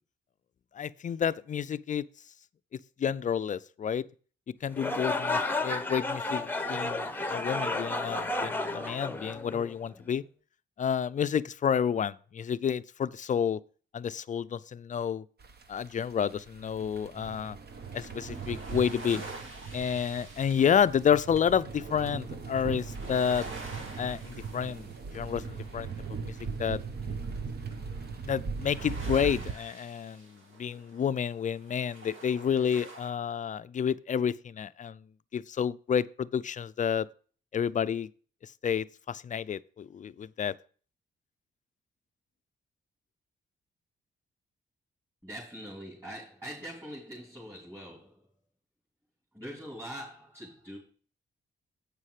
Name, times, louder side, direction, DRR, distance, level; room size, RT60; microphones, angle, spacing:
voice 1, 0.7-2.0 3.0-4.0 4.6-10.2 10.8-13.6 13.9-15.2 15.7-17.6 17.9-19.2 19.7-23.5 24.0-25.9 26.2-26.3 26.6-26.8 28.2-35.0 35.3-37.1 37.5-38.1 38.4-40.5, left 8 dB, 40° left, 0.4 m, -30 dB
sound 1, 4.7-9.9, left 2 dB, 10° left, 0.8 m, -32 dB
sound 2, 15.4-29.5, right 5 dB, 50° right, 1.0 m, -39 dB
sound 3, 17.7-33.1, right 2 dB, 75° right, 2.5 m, -48 dB
voice 2, 45.2-48.2 49.3-50.8, equal, 15° right, 3.2 m, -43 dB
8.2 x 5.6 x 4.9 m
cardioid pair, 80°, 21 cm